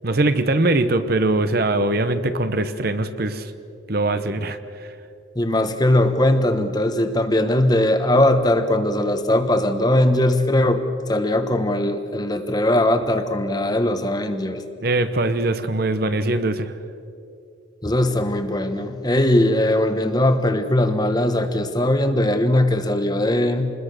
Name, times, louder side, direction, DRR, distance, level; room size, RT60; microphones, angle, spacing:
voice 1, 0.0-3.5 3.9-4.6 14.8-16.7, right 2 dB, 50° right, 10 dB, 1.0 m, -21 dB
voice 2, 5.3-14.6 17.8-23.7, left 1 dB, 20° left, 8 dB, 1.2 m, -20 dB
27.5 x 21.0 x 6.7 m, 2.6 s
head